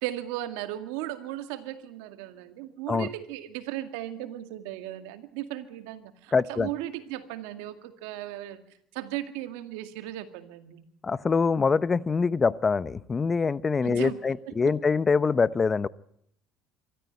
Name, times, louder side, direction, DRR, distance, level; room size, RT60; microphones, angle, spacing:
voice 1, 0.0-8.6 8.9-10.8 13.8-14.2 14.5-14.7, right 14 dB, 85° right, 9 dB, 2.1 m, -36 dB
voice 2, 6.3-6.7 11.0-15.9, left 5 dB, 30° left, 18 dB, 0.8 m, -24 dB
25.0 x 14.0 x 9.4 m, 0.72 s
supercardioid pair, 85°, 0 cm